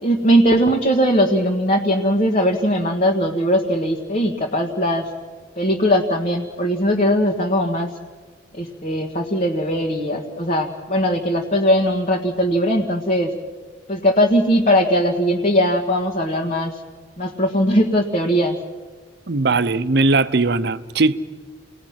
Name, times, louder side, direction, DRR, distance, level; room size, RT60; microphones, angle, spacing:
voice 1, 0.0-5.1 5.6-7.9 8.5-13.3 13.9-16.8 17.2-18.6, equal, 40° left, 1.7 m, -19 dB
voice 2, 19.3-21.2, right 3 dB, 60° right, 0.8 m, -19 dB
29.5 x 20.0 x 5.9 m
head